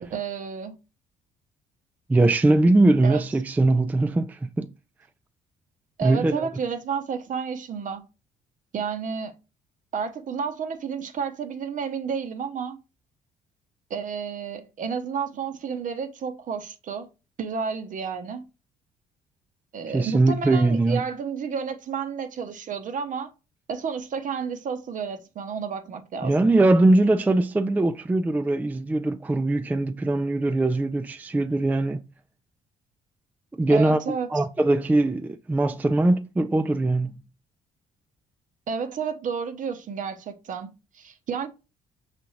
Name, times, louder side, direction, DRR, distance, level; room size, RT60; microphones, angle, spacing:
voice 1, 0.0-0.7 3.0-3.2 6.0-8.0 8.7-9.3 9.9-12.8 13.9-17.1 17.4-18.4 19.7-23.3 23.7-26.3 33.7-34.3 38.7-41.5, right 6 dB, 50° right, 0.8 m, -31 dB
voice 2, 2.1-4.7 6.0-6.5 19.9-21.0 26.2-32.0 33.5-37.2, right 2 dB, 10° right, 0.3 m, -21 dB
5.6 x 2.5 x 3.1 m
hypercardioid pair, 55°, 17 cm